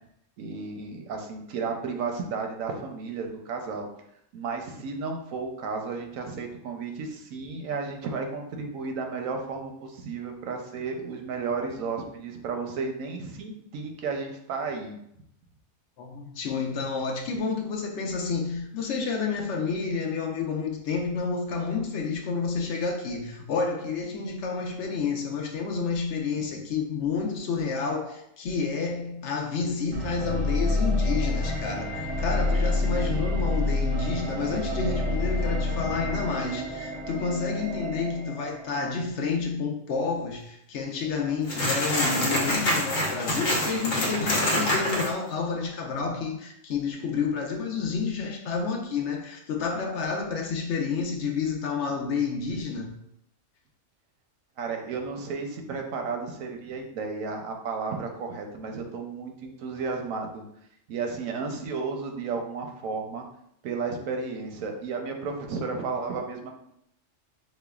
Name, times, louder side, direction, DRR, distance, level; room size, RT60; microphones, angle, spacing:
voice 1, 0.4-3.9 4.3-15.0 54.6-60.4 60.9-63.3 63.6-66.6, right 4 dB, 85° right, 1.0 m, -33 dB
voice 2, 16.0-52.9, left 5 dB, 65° left, 0.9 m, -30 dB
sound 1, 29.9-39.0, left 2 dB, 40° right, 0.6 m, -28 dB
sound 2, 41.5-45.1, left 1 dB, 85° left, 1.3 m, -26 dB
5.5 x 2.1 x 2.3 m
omnidirectional pair, 1.3 m